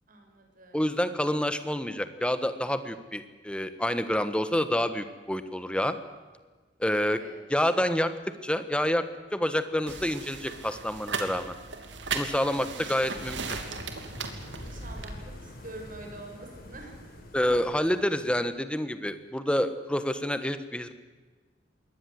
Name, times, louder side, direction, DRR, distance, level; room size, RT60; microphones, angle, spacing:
voice 1, 0.1-0.8 7.0-7.4 12.5-13.4 14.6-17.0 17.4-17.5, right 2 dB, 50° right, 2 dB, 6.4 m, -46 dB
voice 2, 0.7-6.0 6.8-7.2 7.5-8.1 8.4-9.0 9.3-11.5 12.1-13.4 17.3-20.9, left 1 dB, 5° left, 11 dB, 1.4 m, -28 dB
sound 1, 9.9-15.1, right 5 dB, 85° right, 3.0 m, -37 dB
sound 2, 13.1-18.4, left 1 dB, 55° left, 5.7 m, -45 dB
22.5 x 18.5 x 7.9 m, 1.4 s
head